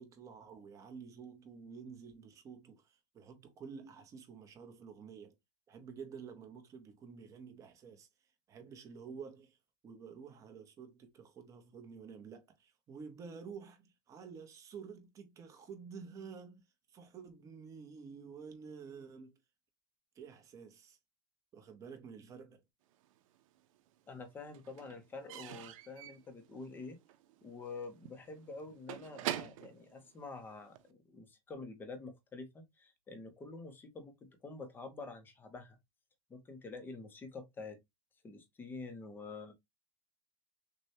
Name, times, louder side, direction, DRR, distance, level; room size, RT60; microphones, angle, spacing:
voice 1, 0.0-5.4 5.7-8.1 8.5-9.6 9.8-16.6 16.9-19.4 20.1-21.0 21.5-22.6 39.2-39.3, right 6 dB, 20° right, 0.8 m, -50 dB
Slam / Squeak / Wood, 23.0-23.9 24.1-30.9, right 13 dB, 80° right, 0.6 m, -45 dB
voice 2, 24.1-27.0 27.4-35.8 36.3-37.8 38.2-39.5, left 3 dB, 10° left, 0.6 m, -47 dB
6.3 x 2.2 x 2.7 m
supercardioid pair, 175°, 17 cm